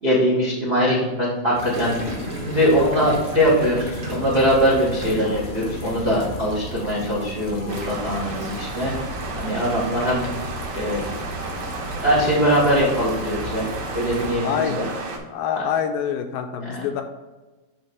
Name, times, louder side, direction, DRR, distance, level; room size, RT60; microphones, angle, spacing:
voice 1, 0.0-2.0 2.4-8.9 9.4-10.3 10.7-11.0 12.0-13.6 13.9-14.8, equal, 80° right, -4 dB, 0.5 m, -21 dB
sound 1, 1.5-14.3, equal, 45° left, 1.1 m, -35 dB
Gurgling, 1.7-5.5 5.8-6.2, right 1 dB, 35° right, 1.3 m, -35 dB
sound 2, 7.7-15.2, right 3 dB, 55° right, 2.0 m, -33 dB
voice 2, 14.4-15.0 15.3-17.0, left 8 dB, 85° left, 6 dB, 2.3 m, -26 dB
10.0 x 3.4 x 4.5 m, 1.2 s
omnidirectional pair, 4.2 m